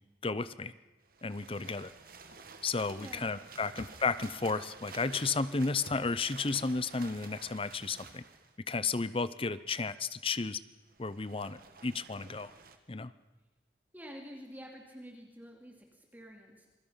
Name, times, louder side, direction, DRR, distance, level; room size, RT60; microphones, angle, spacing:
voice 1, 0.2-0.7 1.2-1.9 2.6-8.2 8.7-10.6 11.0-12.5 12.9-13.1, left 4 dB, 30° left, 15 dB, 0.7 m, -33 dB
sound 1, 1.0-8.6 10.8-12.8, right 4 dB, 55° right, 1.9 m, -51 dB
voice 2, 3.0-3.3 3.6-3.7 13.9-16.7, equal, 10° right, 1 dB, 2.6 m, -49 dB
27.5 x 21.5 x 5.7 m, 1.1 s
head